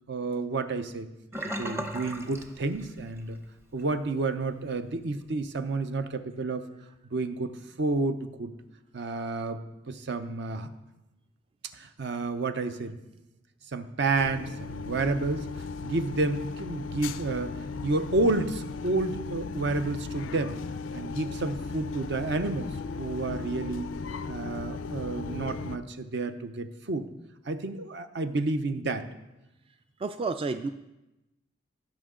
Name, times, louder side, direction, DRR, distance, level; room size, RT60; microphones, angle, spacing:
voice 1, 0.1-1.1 1.6-3.4 3.7-6.6 7.1-8.5 8.9-10.7 11.7-13.0 13.7-15.5 15.8-20.6 20.9-22.7 23.0-23.9 24.3-27.1 27.5-29.1, right 3 dB, 65° right, 9 dB, 0.7 m, -30 dB
Sink (filling or washing), 1.3-3.3 3.6-3.9 4.3-4.4, right 1 dB, 15° right, 0.7 m, -36 dB
sound 1, 14.2-25.8, left 4 dB, 85° left, 0.4 m, -36 dB
voice 2, 30.0-30.7, right 3 dB, 30° right, 9 dB, 0.3 m, -30 dB
16.5 x 6.0 x 3.8 m, 0.98 s
head